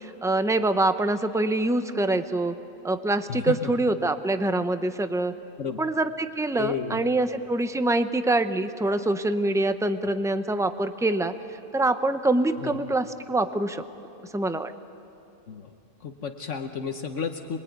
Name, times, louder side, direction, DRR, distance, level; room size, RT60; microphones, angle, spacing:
voice 1, 0.0-2.6 2.8-5.3 5.8-11.3 11.7-13.8 14.3-14.7, right 2 dB, 5° right, 9 dB, 0.5 m, -25 dB
voice 2, 3.3-3.7 5.6-5.8 6.6-7.0 12.6-12.7 15.5-15.7 16.0-17.6, left 6 dB, 60° left, 6 dB, 1.3 m, -32 dB
26.0 x 21.5 x 9.3 m, 2.8 s
omnidirectional pair, 1.4 m